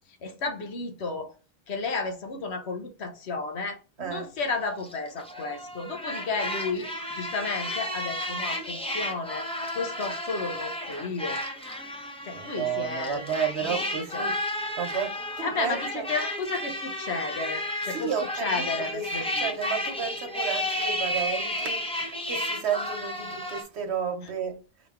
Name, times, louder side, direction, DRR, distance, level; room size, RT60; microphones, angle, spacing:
voice 1, 0.2-1.3 1.7-6.9 7.2-11.4 12.2-13.2 13.7-14.3 15.4-18.1 18.4-19.5, left 4 dB, 85° left, 1.2 m, -33 dB
voice 2, 4.0-4.3 12.3-14.4 14.8-16.1 17.9-24.6, right 7 dB, 80° right, 1.1 m, -32 dB
sound 1, 4.6-23.6, left 1 dB, 5° left, 0.7 m, -33 dB
4.7 x 3.0 x 3.6 m
omnidirectional pair, 1.1 m